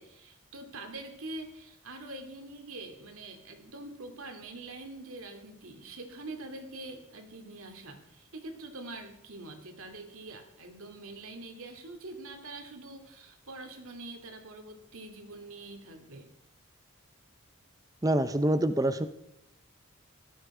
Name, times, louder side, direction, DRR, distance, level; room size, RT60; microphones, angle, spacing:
voice 1, 0.0-16.3, right 2 dB, 80° right, 5 dB, 2.5 m, -44 dB
voice 2, 18.0-19.1, right 1 dB, 15° right, 11 dB, 0.6 m, -26 dB
17.5 x 13.0 x 4.9 m, 0.80 s
head